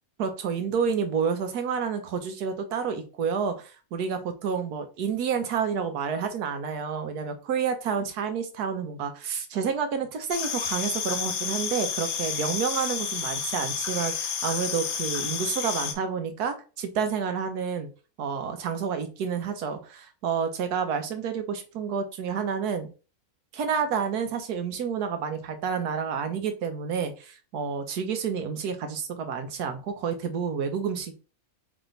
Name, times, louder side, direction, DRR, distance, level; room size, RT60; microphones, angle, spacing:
voice 1, 0.2-17.9 18.2-22.9 23.5-31.1, right 6 dB, 85° right, 1.4 m, -29 dB
sound 1, 10.3-15.9, left 7 dB, 70° left, 1.2 m, -30 dB
3.6 x 3.4 x 3.9 m
omnidirectional pair, 1.6 m